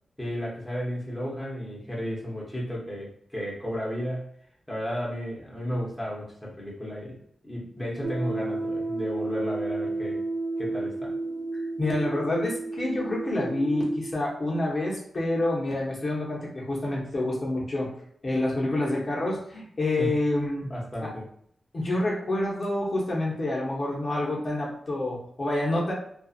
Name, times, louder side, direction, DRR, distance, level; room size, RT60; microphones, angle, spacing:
voice 1, 0.2-4.3 4.7-7.2 7.4-10.2 10.6-11.1 20.0-20.1 20.6-21.2, equal, 10° left, -5 dB, 0.8 m, -33 dB
sound 1, 8.0-14.1, right 2 dB, 45° right, 0.7 m, -32 dB
voice 2, 11.8-17.9 18.2-20.6 21.0-21.1 21.7-25.9, left 1 dB, 40° left, -5 dB, 0.8 m, -28 dB
2.6 x 2.4 x 2.4 m, 0.67 s
wide cardioid pair, 110°, 0 cm